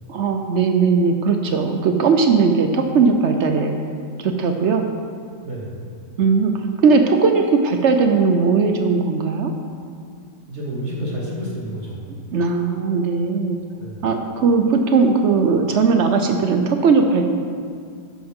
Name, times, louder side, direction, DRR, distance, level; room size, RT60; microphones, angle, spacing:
voice 1, 0.1-3.7 4.2-4.8 6.2-6.5 6.8-9.5 12.3-13.6 14.0-17.3, right 4 dB, 80° right, 5 dB, 0.6 m, -18 dB
voice 2, 5.4-5.8 10.5-12.0 13.8-14.1, equal, 35° right, -5 dB, 2.6 m, -29 dB
12.5 x 9.3 x 3.7 m, 2.2 s
omnidirectional pair, 2.1 m